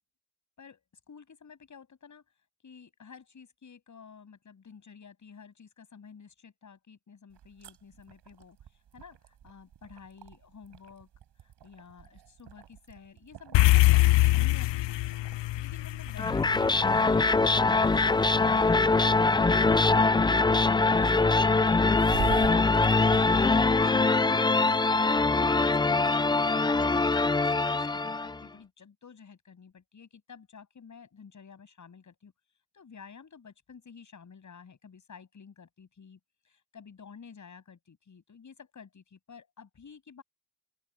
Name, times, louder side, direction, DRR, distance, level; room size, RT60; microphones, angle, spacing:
voice 1, 0.6-2.2 2.6-11.1 11.4-15.0 15.6-19.0 19.4-21.9 22.2-24.8 25.7-32.3 32.7-36.2 36.4-40.2, left 6 dB, 40° left, 7.6 m, -51 dB
sound 1, 7.3-24.5, right 10 dB, 65° right, 5.2 m, -46 dB
sound 2, 13.5-18.1, left 18 dB, 75° left, 0.7 m, -24 dB
sound 3, 16.2-28.4, left 3 dB, 10° left, 0.4 m, -23 dB
open air
cardioid pair, 115°, 44 cm